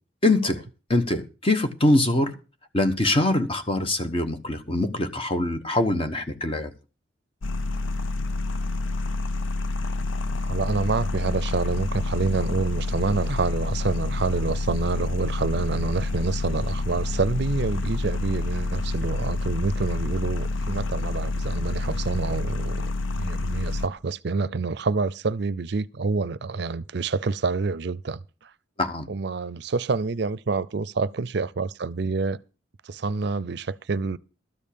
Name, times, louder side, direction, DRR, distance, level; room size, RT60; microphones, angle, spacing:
voice 1, 0.2-0.6 0.9-2.3 2.7-6.7 28.8-29.1, left 2 dB, 30° left, 1.1 m, -23 dB
sound 1, 7.4-23.9, left 2 dB, 85° left, 0.6 m, -28 dB
voice 2, 10.4-28.5 29.1-32.4 32.8-34.2, right 4 dB, 60° right, 0.5 m, -27 dB
13.0 x 5.4 x 8.5 m
head